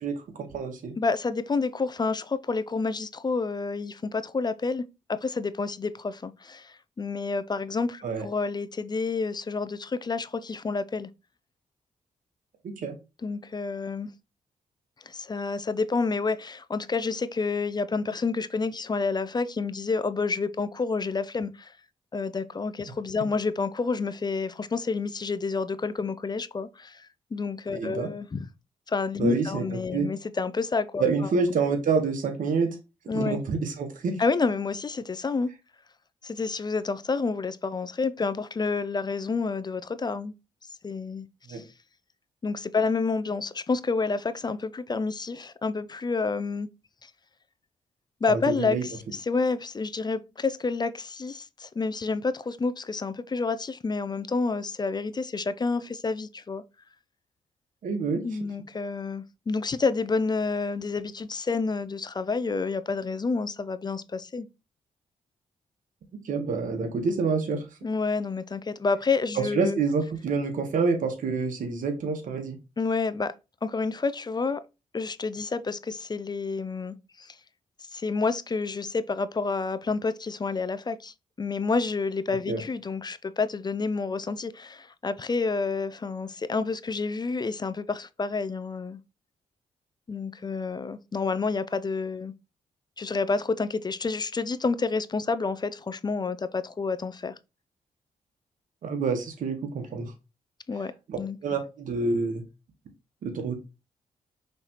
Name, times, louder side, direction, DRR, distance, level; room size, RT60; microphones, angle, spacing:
voice 1, 0.0-0.9 8.0-8.3 12.8-12.9 27.7-28.1 29.2-30.1 31.0-32.7 33.1-34.1 41.5-41.6 48.3-48.8 57.8-58.2 66.2-67.6 69.4-72.6 82.5-82.6 98.8-100.1 101.1-102.4 103.2-103.5, right 4 dB, 65° right, 1.2 m, -27 dB
voice 2, 1.0-4.8 5.1-11.1 13.2-14.1 15.1-21.7 22.1-28.5 28.9-31.0 33.1-33.4 34.2-35.5 36.2-40.3 40.8-41.6 42.4-46.7 47.0-47.1 48.2-56.6 58.2-64.5 67.8-69.8 72.8-73.3 73.6-74.6 74.9-77.4 77.9-89.0 90.1-92.3 93.0-97.3 100.7-100.9 101.2-101.4, left 4 dB, 30° left, 0.5 m, -29 dB
5.4 x 3.2 x 2.9 m
supercardioid pair, 50°, 14 cm